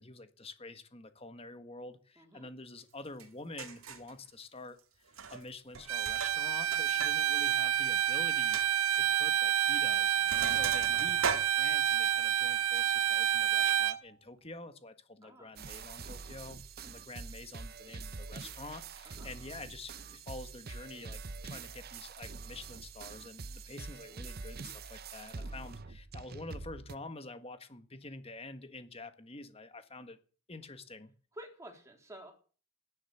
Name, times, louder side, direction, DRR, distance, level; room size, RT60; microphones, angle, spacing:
voice 1, 0.0-8.6 8.9-30.2 30.5-31.1, left 2 dB, 25° left, 10 dB, 1.6 m, -48 dB
voice 2, 2.2-2.5 7.3-7.4 15.2-16.2 19.1-19.3 25.4-25.8 31.3-32.3, right 1 dB, 15° right, 2 dB, 3.6 m, -52 dB
Sink (filling or washing), 3.2-3.3 3.6-4.1 5.1-5.5 5.7-7.2 7.5-7.6 8.0-8.1 8.5-8.7 9.5-9.7 10.0-12.2, right 5 dB, 70° right, 2.3 m, -38 dB
Bowed string instrument, 5.9-14.0, right 11 dB, 90° right, 0.7 m, -29 dB
sound 1, 15.6-27.0, right 4 dB, 45° right, 0.8 m, -45 dB
16.0 x 11.0 x 6.9 m, 0.39 s
head